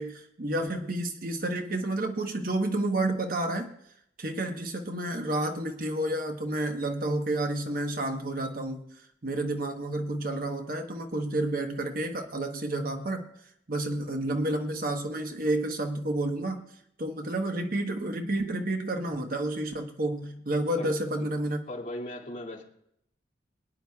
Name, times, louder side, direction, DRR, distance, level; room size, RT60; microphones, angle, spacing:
voice 1, 0.0-3.7 4.2-8.9 9.2-13.2 13.7-16.6 17.0-21.6, right 1 dB, 50° right, 4 dB, 1.1 m, -30 dB
voice 2, 20.8-21.3 21.7-22.6, left 1 dB, 45° left, -2 dB, 2.3 m, -38 dB
24.5 x 10.0 x 2.3 m, 0.74 s
head